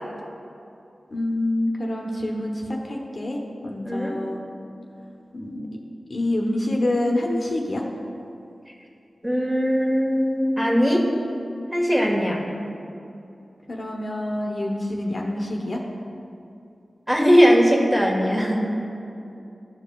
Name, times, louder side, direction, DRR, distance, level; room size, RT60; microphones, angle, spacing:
voice 1, 1.1-4.4 5.3-5.7 6.1-7.8 13.7-15.8, left 1 dB, 55° left, -1 dB, 0.8 m, -26 dB
voice 2, 3.8-4.1 9.2-11.0 11.7-12.4 17.1-18.6, equal, 15° right, -2 dB, 1.4 m, -19 dB
12.5 x 5.1 x 2.3 m, 2.7 s
wide cardioid pair, 65°, 0 cm